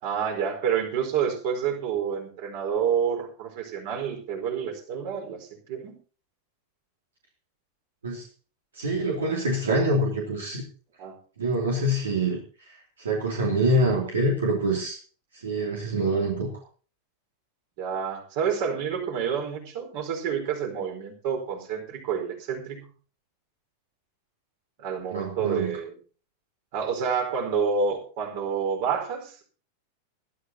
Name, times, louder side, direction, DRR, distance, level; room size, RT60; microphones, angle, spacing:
voice 1, 0.0-6.0 11.0-11.2 17.8-22.8 24.8-25.9 26.7-29.4, right 7 dB, 50° right, 3 dB, 4.5 m, -28 dB
voice 2, 8.7-10.6 11.4-15.0 15.3-16.5 25.1-25.8, right 1 dB, 70° right, 0 dB, 2.7 m, -26 dB
20.5 x 12.5 x 2.9 m, 0.39 s
figure-of-eight pair, 90°, 0 cm